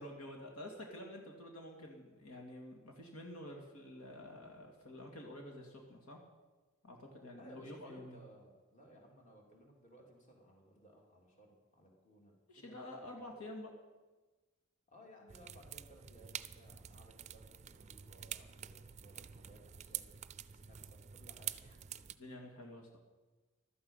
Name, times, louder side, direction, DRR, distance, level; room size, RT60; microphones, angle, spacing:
voice 1, 0.0-6.2 6.8-8.2 12.5-13.7 22.2-23.0, left 1 dB, 85° left, 1 dB, 2.4 m, -49 dB
voice 2, 7.3-13.1 14.9-21.9, right 1 dB, 35° left, 0 dB, 3.1 m, -61 dB
sound 1, 15.3-22.2, right 10 dB, 30° right, 0.4 m, -47 dB
15.5 x 12.5 x 5.6 m, 1.2 s
head